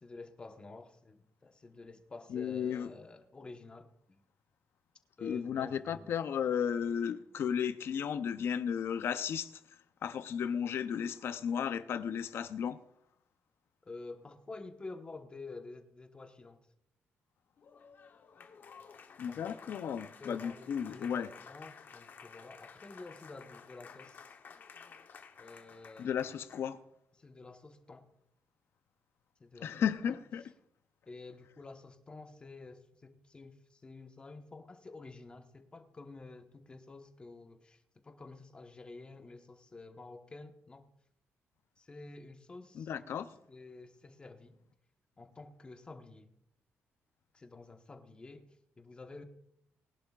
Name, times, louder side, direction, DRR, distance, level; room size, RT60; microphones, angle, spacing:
voice 1, 0.0-4.2 5.2-6.1 13.8-16.6 19.3-19.8 20.2-24.3 25.4-26.3 27.2-28.1 29.4-30.2 31.1-40.9 41.8-44.6 45.2-46.3 47.3-49.2, left 3 dB, 20° left, 1.2 m, -50 dB
voice 2, 2.3-2.9 5.2-9.5 10.0-12.8 19.2-21.3 26.0-26.8 29.6-30.4 42.7-43.3, left 8 dB, 60° left, 0.6 m, -34 dB
Applause, 17.6-26.8, left 6 dB, 45° left, 1.0 m, -53 dB
21.5 x 11.5 x 2.4 m
cardioid pair, 150°, 5 cm